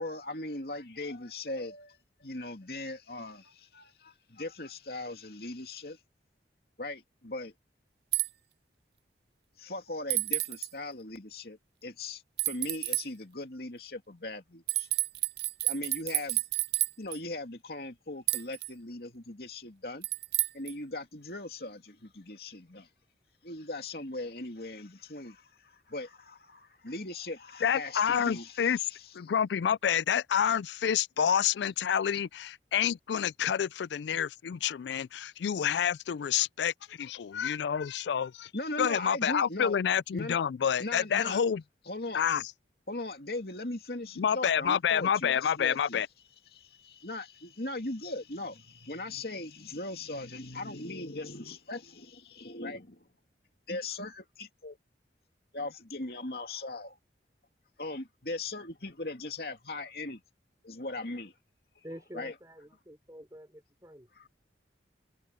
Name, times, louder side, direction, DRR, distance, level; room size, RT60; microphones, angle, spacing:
voice 1, 0.0-6.0 6.8-7.5 9.6-14.9 15.6-16.5 17.0-20.1 20.5-22.9 23.4-29.1 31.6-31.7 32.1-32.2 38.5-39.8 40.1-40.4 40.8-41.4 41.9-42.2 42.9-46.0 46.5-53.0 53.7-54.8 55.5-57.0 57.8-60.2 60.6-61.3 61.8-61.9 62.1-62.3 64.2-64.3, left 2 dB, 60° left, 2.6 m, -39 dB
sound 1, 8.1-8.3 10.1-10.7 12.4-13.0 14.7-17.2 18.3-18.7 20.0-20.7, right 18 dB, 65° right, 0.6 m, -30 dB
voice 2, 27.6-28.8 29.1-38.5 38.8-41.6 42.1-42.4 44.2-46.1, left 8 dB, 80° left, 0.4 m, -28 dB
voice 3, 61.8-64.1, equal, 20° right, 4.8 m, -47 dB
head